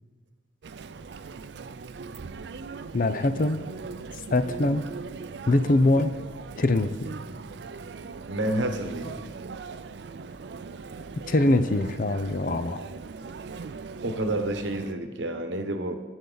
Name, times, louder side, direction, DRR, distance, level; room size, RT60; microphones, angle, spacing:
Chatter, 0.6-14.9, right 4 dB, 70° right, 0.4 m, -40 dB
voice 1, 2.9-3.6 4.3-4.8 5.5-6.1 6.6-6.9 11.3-12.8, left 2 dB, 50° left, 11 dB, 0.6 m, -22 dB
voice 2, 8.3-9.2 14.0-16.0, right 1 dB, 85° right, 6 dB, 1.1 m, -29 dB
22.0 x 8.0 x 4.0 m, 1.3 s
head